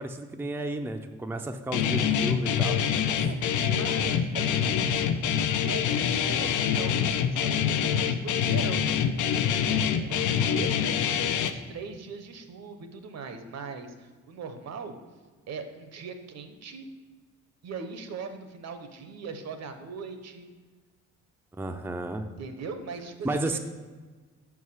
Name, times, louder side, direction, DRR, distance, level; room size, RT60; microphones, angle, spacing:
voice 1, 0.0-2.8 10.1-10.6 21.5-22.3 23.2-23.6, right 2 dB, 5° right, 6 dB, 0.4 m, -33 dB
Guitar, 1.7-11.5, left 8 dB, 75° left, 0.6 m, -25 dB
voice 2, 3.3-4.9 5.4-7.0 7.3-8.9 9.4-14.9 15.5-16.9 17.6-20.5 22.4-23.6, right 4 dB, 60° right, 7 dB, 0.9 m, -40 dB
5.5 x 4.9 x 5.6 m, 1.4 s
cardioid pair, 90°, 30 cm